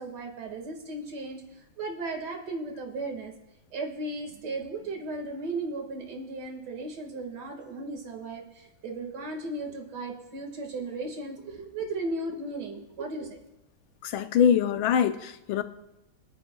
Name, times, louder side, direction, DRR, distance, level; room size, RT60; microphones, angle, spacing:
voice 1, 0.0-3.3 3.7-13.4, right 2 dB, 55° right, 2 dB, 2.4 m, -36 dB
voice 2, 14.0-15.6, left 8 dB, 85° left, 10 dB, 1.5 m, -23 dB
24.5 x 9.9 x 2.3 m, 0.92 s
omnidirectional pair, 2.1 m